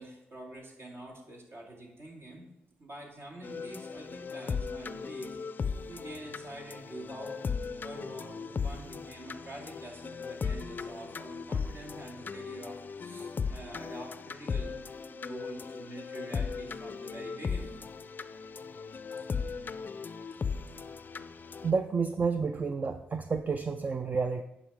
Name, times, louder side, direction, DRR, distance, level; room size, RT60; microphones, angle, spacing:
voice 1, 0.0-2.4 2.8-5.4 5.9-7.4 7.8-14.8 15.1-17.8, right 1 dB, 60° right, -1 dB, 2.3 m, -46 dB
sound 1, 3.4-21.7, left 5 dB, 45° left, 0.4 m, -37 dB
voice 2, 21.6-24.4, right 5 dB, 40° right, 8 dB, 0.4 m, -30 dB
9.6 x 5.0 x 3.6 m, 0.89 s
supercardioid pair, 55°, 5 cm